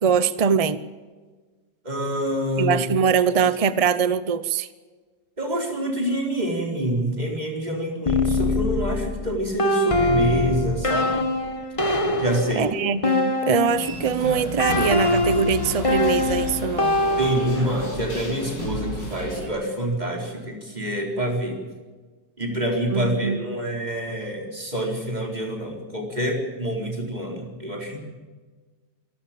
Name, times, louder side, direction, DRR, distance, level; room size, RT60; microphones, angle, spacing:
voice 1, 0.0-0.8 2.6-4.7 12.6-17.0 22.9-23.4, right 6 dB, 50° right, 14 dB, 0.4 m, -22 dB
voice 2, 1.8-2.8 5.4-11.1 12.2-12.7 17.2-21.6 22.4-28.0, equal, 25° right, 1 dB, 4.5 m, -26 dB
sound 1, 8.1-14.0 14.6-17.8, left 2 dB, 20° left, 1.3 m, -23 dB
sound 2, 13.6-19.5, left 1 dB, 90° left, 7.1 m, -32 dB
26.5 x 13.0 x 8.9 m, 1.4 s
omnidirectional pair, 1.9 m